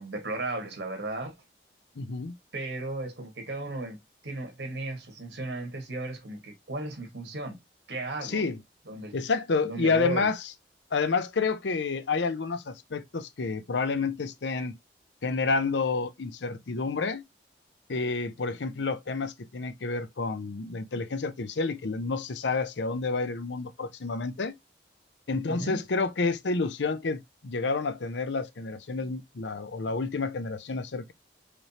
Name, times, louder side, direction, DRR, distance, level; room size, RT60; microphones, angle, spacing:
voice 1, 0.0-1.4 2.5-7.6 7.9-8.4 8.9-9.2 9.6-10.3 25.5-25.8, right 2 dB, 80° right, 1.8 m, -35 dB
voice 2, 2.0-2.4 8.2-8.6 9.1-10.4 10.9-14.8 15.2-17.2 17.9-24.6 25.3-31.1, left 4 dB, 85° left, 0.6 m, -29 dB
5.0 x 3.2 x 2.9 m
head